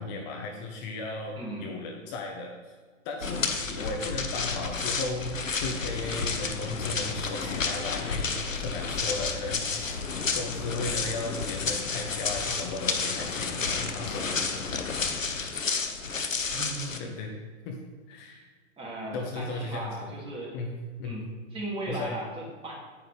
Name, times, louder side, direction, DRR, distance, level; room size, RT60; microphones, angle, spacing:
voice 1, 0.0-2.7 3.0-10.0 10.3-14.4 17.0-17.3 17.6-17.8 18.1-18.4 19.1-20.1 20.5-21.2 21.9-22.1, left 2 dB, 35° left, 1 dB, 1.3 m, -36 dB
sound 1, 3.2-17.0, left 4 dB, 85° left, 1.0 m, -31 dB
sound 2, 5.7-15.2, left 6 dB, 15° left, 0.5 m, -42 dB
voice 2, 16.5-17.1 18.8-20.6 21.0-21.3 21.5-22.7, right 1 dB, 15° right, -4 dB, 3.0 m, -37 dB
9.5 x 9.4 x 3.6 m, 1.5 s
figure-of-eight pair, 110°, 38 cm